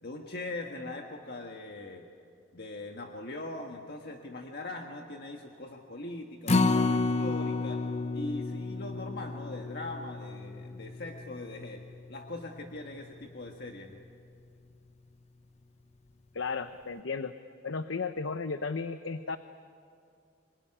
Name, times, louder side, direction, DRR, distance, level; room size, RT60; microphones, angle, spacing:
voice 1, 0.0-2.0 2.5-7.8 8.1-11.8 12.1-14.0, left 2 dB, 55° left, 2 dB, 1.6 m, -41 dB
Acoustic guitar, 6.5-12.8 13.2-13.3 13.7-13.8, left 3 dB, 35° left, 0.8 m, -31 dB
voice 2, 16.3-17.3 17.6-19.4, left 4 dB, 85° left, 10 dB, 0.8 m, -34 dB
26.5 x 21.5 x 10.0 m, 2.3 s
head